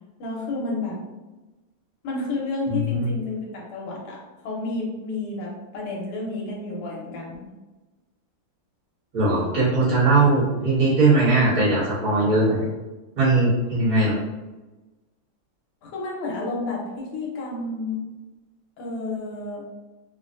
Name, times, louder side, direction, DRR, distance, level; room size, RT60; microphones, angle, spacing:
voice 1, 0.2-1.0 2.0-4.2 4.4-7.5 15.8-18.0 18.8-19.6, left 2 dB, 80° left, -3 dB, 1.8 m, -30 dB
voice 2, 2.7-3.1 9.1-12.7 13.2-14.1, right 2 dB, 65° right, -9 dB, 2.5 m, -20 dB
5.1 x 2.1 x 2.5 m, 1.2 s
omnidirectional pair, 2.4 m